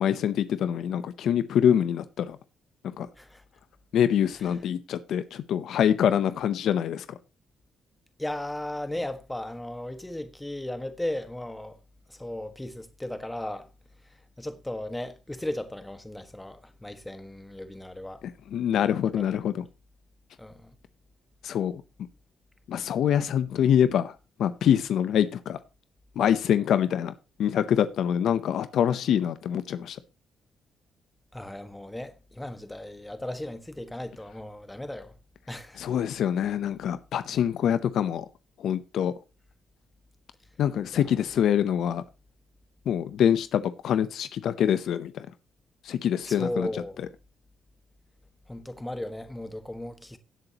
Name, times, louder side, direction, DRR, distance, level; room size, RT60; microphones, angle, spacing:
voice 1, 0.0-2.4 2.8-3.1 3.9-7.1 18.5-19.6 21.4-21.8 22.7-25.6 26.2-27.1 27.4-30.0 35.8-38.3 38.6-39.1 40.6-42.0 42.9-45.3 45.8-46.7, left 9 dB, 70° left, 0.7 m, -25 dB
voice 2, 8.2-11.8 12.1-13.7 14.0-18.2 19.2-19.3 20.4-20.7 31.3-35.1 35.5-35.8 40.9-41.1 46.2-47.0 48.5-50.2, left 1 dB, 10° left, 1.5 m, -36 dB
16.5 x 8.0 x 3.0 m
cardioid pair, 90°, 0 cm